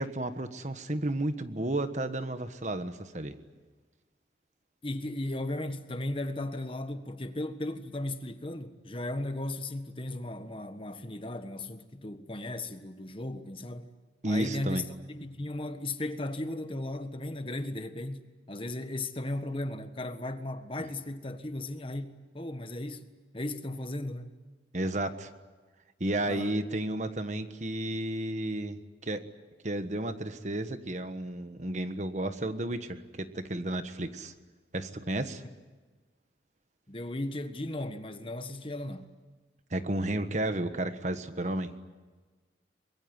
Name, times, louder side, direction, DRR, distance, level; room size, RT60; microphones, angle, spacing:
voice 1, 0.0-3.4 14.2-14.8 20.8-20.9 24.7-25.3 26.0-29.2 29.6-34.3 34.7-35.4 39.7-41.7, right 1 dB, 40° right, 1.4 m, -32 dB
voice 2, 4.8-13.9 14.2-23.0 23.3-24.3 26.2-26.5 36.9-39.1, left 1 dB, 30° left, 1.5 m, -36 dB
24.5 x 22.0 x 9.7 m
head